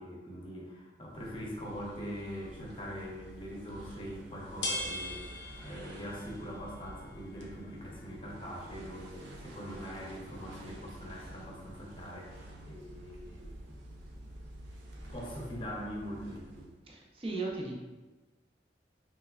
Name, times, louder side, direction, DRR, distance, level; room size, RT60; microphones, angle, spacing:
voice 1, 0.0-13.8 15.1-16.6, equal, 30° left, -3 dB, 0.7 m, -43 dB
sound 1, 1.1-16.9, right 1 dB, 85° right, 0.5 m, -50 dB
sound 2, 3.7-15.1, left 1 dB, 80° left, 0.5 m, -45 dB
voice 2, 16.9-17.7, right 3 dB, 30° right, -1 dB, 0.5 m, -36 dB
3.3 x 3.1 x 2.3 m, 1.2 s
head